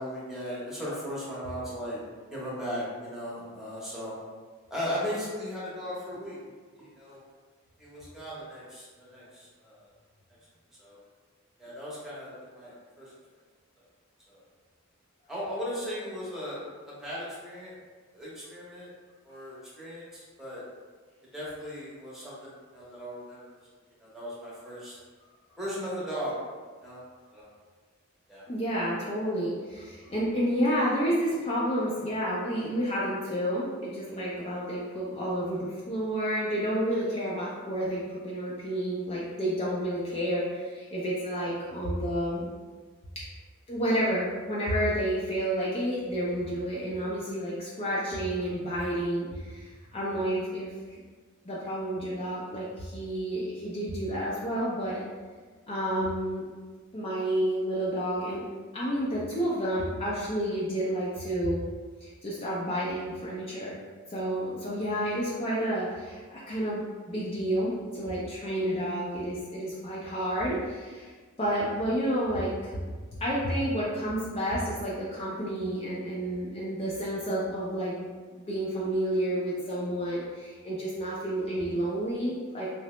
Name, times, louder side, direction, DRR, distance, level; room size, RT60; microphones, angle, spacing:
voice 1, 0.0-2.0 2.3-4.1 4.7-6.4 6.8-7.2 7.8-9.9 10.8-11.0 11.6-13.1 14.3-14.4 15.3-17.7 18.1-18.9 19.2-20.6 21.3-23.6 24.0-25.0 25.6-26.4 26.8-27.0 27.3-27.5 28.3-28.5, equal, ahead, -8 dB, 0.8 m, -37 dB
voice 2, 28.5-42.5 43.7-51.0 51.4-55.0 55.7-56.4 56.9-58.4 58.7-61.6 62.0-63.7 64.1-66.8 67.1-71.1 71.4-72.8 73.1-78.1 78.4-82.7, equal, 30° left, -7 dB, 0.4 m, -30 dB
2.8 x 2.0 x 3.0 m, 1.5 s
head